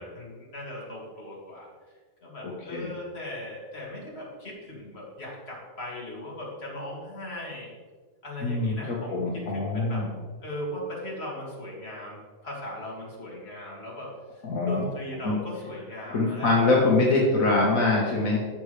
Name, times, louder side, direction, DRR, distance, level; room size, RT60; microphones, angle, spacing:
voice 1, 0.0-1.7 2.2-7.7 8.2-10.0 10.4-17.0 17.6-17.8, left 1 dB, 45° left, -4 dB, 2.5 m, -38 dB
voice 2, 2.4-2.9 8.4-10.1 14.4-14.8 15.2-15.4 16.1-18.4, left 2 dB, 75° left, -3 dB, 1.8 m, -24 dB
13.5 x 6.1 x 3.3 m, 1.5 s
omnidirectional pair, 1.4 m